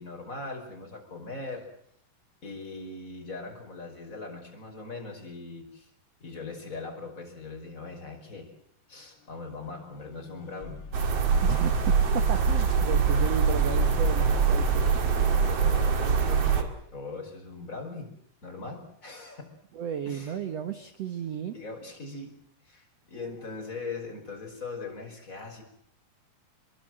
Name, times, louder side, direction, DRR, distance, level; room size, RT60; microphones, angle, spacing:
voice 1, 0.0-1.7 2.4-5.9 6.2-8.5 8.9-10.8 15.3-18.1 18.4-19.5 20.1-20.4 21.5-22.4 22.7-25.6, left 3 dB, 20° left, 2 dB, 5.5 m, -40 dB
sound 1, 9.5-14.8, left 4 dB, 85° left, 1.0 m, -38 dB
sound 2, 10.9-16.6, right 6 dB, 45° right, 2.8 m, -24 dB
voice 2, 11.4-14.8 19.7-21.5, right 8 dB, 70° right, 9 dB, 1.5 m, -33 dB
26.5 x 22.5 x 7.8 m, 0.70 s
omnidirectional pair, 4.7 m